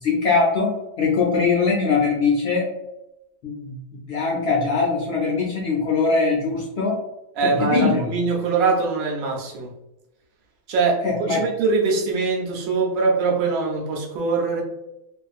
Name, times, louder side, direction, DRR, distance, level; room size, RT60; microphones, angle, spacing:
voice 1, 0.0-2.7 3.4-3.8 4.1-7.0 7.4-8.2 11.0-11.4, left 4 dB, 70° left, -3 dB, 0.6 m, -21 dB
voice 2, 7.4-9.7 10.7-14.6, right 4 dB, 70° right, 0 dB, 1.0 m, -22 dB
2.5 x 2.4 x 2.4 m, 0.91 s
omnidirectional pair, 1.5 m